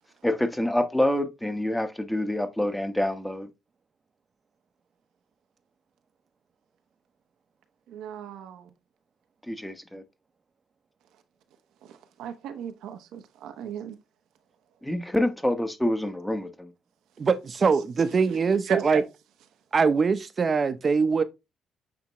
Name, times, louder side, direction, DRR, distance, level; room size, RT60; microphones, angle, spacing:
voice 1, 0.2-3.5 9.5-10.0 14.8-16.7, left 1 dB, 5° left, 1.0 m, -27 dB
voice 2, 7.9-8.7 11.8-14.0 18.7-19.0, right 8 dB, 90° right, 0.9 m, -36 dB
voice 3, 17.2-19.0 19.7-21.2, right 5 dB, 40° right, 0.8 m, -23 dB
8.7 x 3.6 x 3.0 m
cardioid pair, 90°, 0 cm